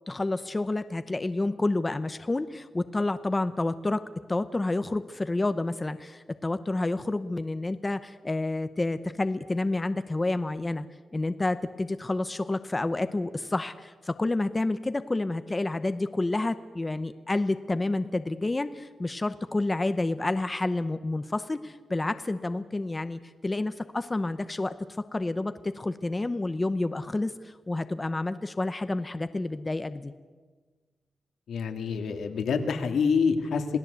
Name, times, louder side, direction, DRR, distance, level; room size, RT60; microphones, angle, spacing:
voice 1, 0.1-4.0 4.3-10.9 11.1-24.7 25.1-30.1, left 2 dB, 15° left, 11 dB, 0.8 m, -29 dB
voice 2, 31.5-33.8, left 5 dB, 85° left, 6 dB, 2.4 m, -26 dB
27.0 x 18.5 x 8.2 m, 1.4 s
wide cardioid pair, 165°, 0 cm